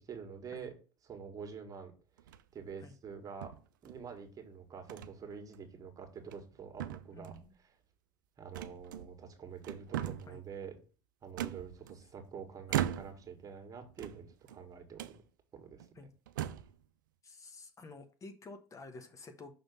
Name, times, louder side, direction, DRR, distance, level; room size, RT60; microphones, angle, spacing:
voice 1, 0.1-0.7 1.0-1.9 2.5-3.5 3.8-7.3 8.4-10.7 11.2-15.2 15.5-15.9, right 6 dB, 35° right, 5 dB, 1.8 m, -47 dB
sound 1, 2.2-2.6 3.4-4.2 4.9-5.1 5.5-5.7 6.2-6.5 6.8-7.5 8.5-9.3 9.6-10.4 11.4-12.2 12.7-13.3 13.9-14.6 15.0-15.2 15.8-15.9 16.3-16.8, right 12 dB, 90° right, 0.5 m, -39 dB
voice 2, 7.1-7.5 10.3-10.4 12.7-12.9 15.9-16.1 17.2-19.5, left 3 dB, 30° left, 8 dB, 1.1 m, -51 dB
6.0 x 3.5 x 5.4 m, 0.36 s
supercardioid pair, 85°, 10 cm